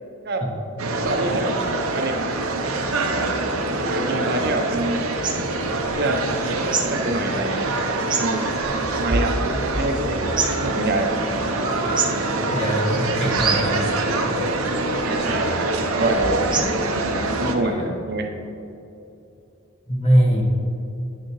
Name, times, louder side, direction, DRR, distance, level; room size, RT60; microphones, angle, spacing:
sound 1, 0.8-17.6, right 2 dB, 85° right, 0.8 m, -25 dB
voice 1, 0.9-1.6 1.9-2.3 3.1-3.3 3.9-5.0 5.9-6.3 6.6-7.7 8.1-8.4 8.9-9.3 9.7-11.1 15.0-16.4 17.1-17.8 18.0-18.3, right 2 dB, 50° right, 4 dB, 0.8 m, -26 dB
sound 2, 3.8-16.8, right 4 dB, 20° right, 0.5 m, -30 dB
voice 2, 12.5-13.8 16.3-16.5 17.6-17.9 19.9-20.4, equal, 30° left, -5 dB, 1.6 m, -21 dB
9.7 x 6.5 x 3.1 m, 2.8 s
head